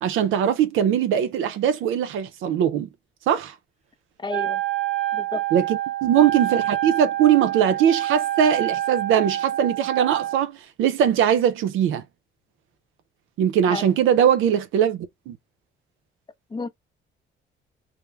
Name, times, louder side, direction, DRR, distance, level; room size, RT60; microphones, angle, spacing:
voice 1, 0.0-2.9 3.3-3.5 5.5-5.6 6.0-12.0 13.4-15.4, right 9 dB, 85° right, 0.5 m, -21 dB
voice 2, 4.2-4.6 5.1-5.5 13.7-14.0 16.5-16.7, left 3 dB, 25° left, 0.5 m, -31 dB
Wind instrument woodwind instrument, 4.3-10.5, right 13 dB, 35° right, 0.7 m, -27 dB
2.3 x 2.0 x 3.1 m
cardioid pair, 90°, 20 cm